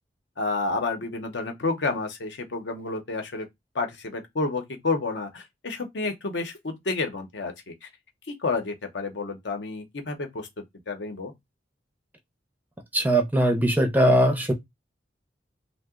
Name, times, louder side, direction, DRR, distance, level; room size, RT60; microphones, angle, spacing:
voice 1, 0.4-3.5 3.7-7.9 8.3-10.5 10.9-11.3, left 3 dB, 70° left, 0.7 m, -30 dB
voice 2, 12.9-14.5, right 1 dB, 10° right, 0.5 m, -20 dB
2.8 x 2.0 x 3.5 m
head